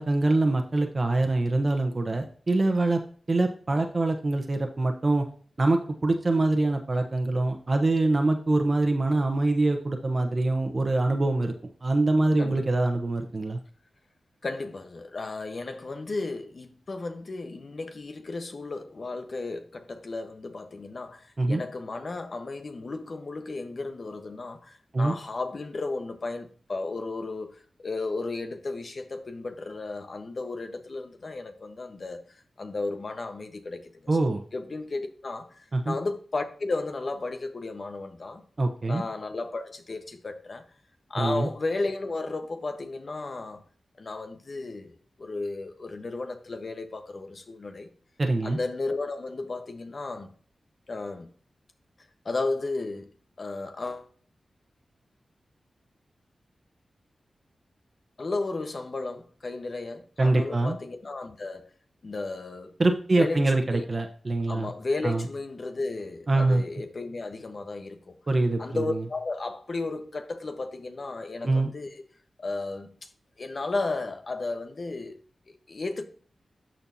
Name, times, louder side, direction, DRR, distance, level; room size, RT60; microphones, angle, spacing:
voice 1, 0.0-3.0 3.3-5.2 5.6-11.5 11.8-13.6 21.4-21.6 24.9-25.1 34.1-34.4 35.7-35.9 38.6-39.0 41.2-41.5 48.2-48.6 60.2-60.8 62.8-64.7 65.0-65.2 66.3-66.6 68.3-68.8 71.4-71.7, right 2 dB, 45° right, 1.0 m, -24 dB
voice 2, 12.4-12.8 14.4-38.4 38.9-40.6 41.1-43.6 44.0-47.9 48.4-50.3 50.9-51.3 52.2-53.1 53.4-54.1 58.2-61.6 62.0-62.7 63.2-63.8 64.5-68.2 68.6-72.0 72.4-73.1 73.4-75.2 75.5-76.0, left 3 dB, 60° left, 1.2 m, -34 dB
12.5 x 4.4 x 2.8 m
cardioid pair, 45°, 0 cm